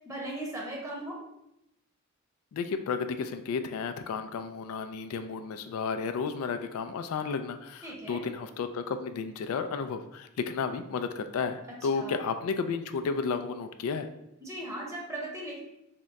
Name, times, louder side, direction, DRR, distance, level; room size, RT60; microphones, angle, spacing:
voice 1, 0.1-1.2 7.8-8.2 11.9-12.2 14.4-15.6, right 1 dB, 15° right, -4 dB, 0.8 m, -38 dB
voice 2, 2.5-14.1, left 5 dB, 80° left, 9 dB, 0.3 m, -32 dB
3.6 x 2.2 x 4.0 m, 0.83 s
head